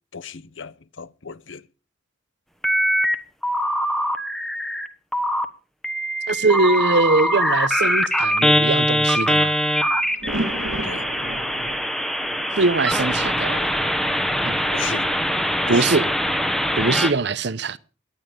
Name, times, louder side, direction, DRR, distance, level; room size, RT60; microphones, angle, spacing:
voice 1, 0.1-1.6 10.8-11.0 14.7-15.1 15.6-15.9 16.9-17.1, left 6 dB, 75° left, 0.8 m, -35 dB
sound 1, 2.6-3.2 3.4-4.9 5.1-5.4 5.8-17.1, equal, ahead, 1.2 m, -22 dB
voice 2, 6.3-9.5 12.6-13.7 14.4-14.6 15.7-16.1 16.8-17.8, right 3 dB, 60° right, 0.8 m, -22 dB
sound 2, 9.7-15.4, right 1 dB, 85° right, 2.1 m, -35 dB
18.0 x 11.5 x 5.1 m
head